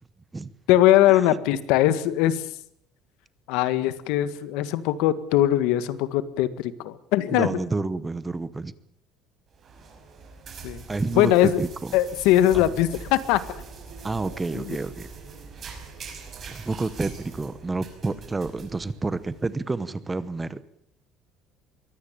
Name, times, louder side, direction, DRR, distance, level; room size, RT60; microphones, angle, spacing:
voice 1, 0.7-2.4 3.5-7.5 10.6-10.8 11.2-11.6 11.9-13.6 14.5-14.8, left 13 dB, 85° left, 14 dB, 1.7 m, -21 dB
voice 2, 7.3-8.7 10.9-11.9 12.5-12.7 14.0-15.1 16.5-20.6, right 3 dB, 10° right, 16 dB, 0.9 m, -29 dB
sound 1, 9.5-19.5, right 4 dB, 30° right, 5.6 m, -42 dB
23.0 x 17.0 x 8.8 m, 0.68 s
cardioid pair, 180°, 0 cm